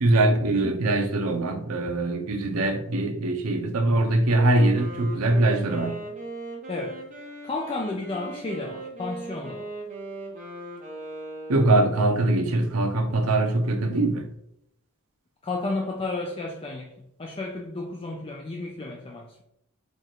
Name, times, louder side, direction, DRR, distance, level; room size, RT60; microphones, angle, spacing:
voice 1, 0.0-6.0 11.5-14.3, right 2 dB, 85° right, 0.8 m, -22 dB
Wind instrument woodwind instrument, 4.2-12.2, right 2 dB, 35° right, 1.2 m, -39 dB
voice 2, 6.7-7.0 7.4-9.7 15.4-19.4, left 2 dB, 25° left, 0.4 m, -32 dB
4.6 x 2.5 x 4.4 m
head